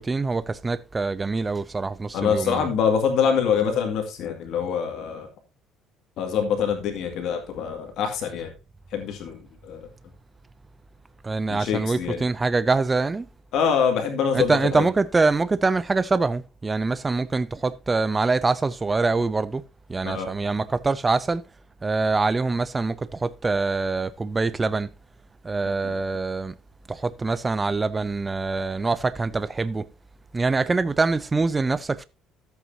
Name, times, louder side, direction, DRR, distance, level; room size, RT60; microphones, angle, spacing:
voice 1, 0.0-2.7 11.2-13.3 14.3-19.6 19.9-21.4 21.8-24.9 25.4-26.5 26.9-29.9 30.3-32.0, right 3 dB, 15° right, 0.4 m, -24 dB
voice 2, 2.1-5.3 6.2-8.5 8.9-9.8 11.5-12.2 13.5-14.8 20.0-20.3 25.8-25.9, left 7 dB, 65° left, 2.1 m, -25 dB
13.5 x 8.1 x 2.7 m
cardioid pair, 145°, 0 cm